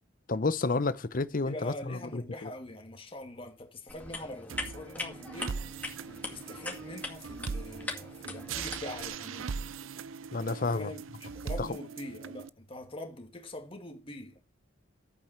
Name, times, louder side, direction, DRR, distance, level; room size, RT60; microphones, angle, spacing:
voice 1, 0.3-2.5 10.3-10.9 11.6-11.7, left 3 dB, 45° left, 0.7 m, -30 dB
voice 2, 1.4-5.6 6.1-9.5 10.6-14.4, left 1 dB, 30° left, 2.0 m, -43 dB
sound 1, 3.9-9.1, left 2 dB, 10° left, 2.2 m, -41 dB
sound 2, 4.5-12.5, right 5 dB, 90° right, 0.5 m, -40 dB
11.0 x 8.6 x 4.5 m
head